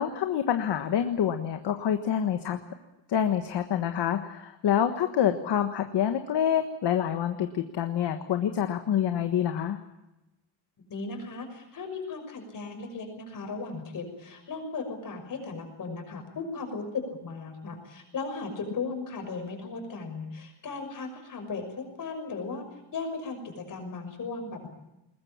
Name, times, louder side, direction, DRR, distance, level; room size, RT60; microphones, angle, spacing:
voice 1, 0.0-2.6 3.1-9.8, left 9 dB, 60° left, 7 dB, 1.5 m, -27 dB
voice 2, 10.8-22.6 22.9-24.7, left 4 dB, 45° left, 5 dB, 6.1 m, -36 dB
21.0 x 21.0 x 8.6 m, 0.96 s
wide cardioid pair, 180°, 46 cm